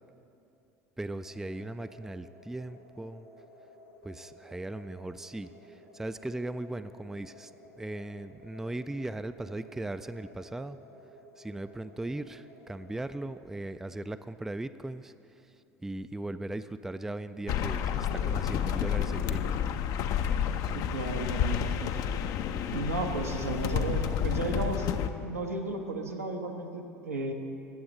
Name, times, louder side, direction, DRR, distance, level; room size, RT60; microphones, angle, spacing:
voice 1, 1.0-3.3 4.0-7.5 7.8-10.8 11.4-15.1 15.4-15.5 15.8-19.6, right 2 dB, 5° right, 12 dB, 0.3 m, -38 dB
sound 1, 1.2-13.4, equal, 85° left, 1.2 m, -55 dB
sound 2, 17.5-25.1, left 8 dB, 50° left, 0.5 m, -30 dB
voice 2, 20.7-21.9 22.7-24.9 25.2-27.3, right 3 dB, 85° right, 2 dB, 1.0 m, -34 dB
20.0 x 7.7 x 3.9 m, 2.7 s
figure-of-eight pair, 65°, 8 cm